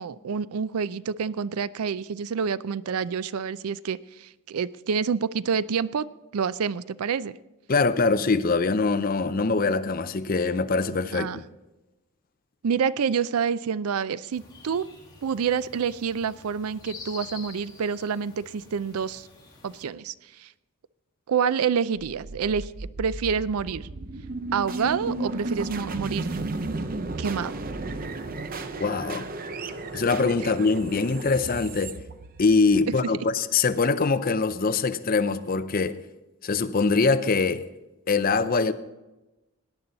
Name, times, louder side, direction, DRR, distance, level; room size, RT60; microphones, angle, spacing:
voice 1, 0.0-6.1 6.3-7.3 11.1-11.4 12.6-14.9 15.2-19.3 19.6-20.1 20.4-20.5 21.3-23.9 24.5-26.3 27.2-27.6 32.9-33.0, right 6 dB, 80° right, 0.4 m, -27 dB
voice 2, 7.7-11.4 28.8-29.3 29.9-31.9 32.4-36.0 36.4-37.6 38.1-38.7, left 4 dB, 40° left, 0.6 m, -23 dB
sound 1, 14.3-19.9, left 4 dB, 20° left, 2.2 m, -47 dB
sound 2, 22.0-33.0, right 2 dB, 40° right, 0.7 m, -34 dB
17.5 x 10.5 x 4.0 m
head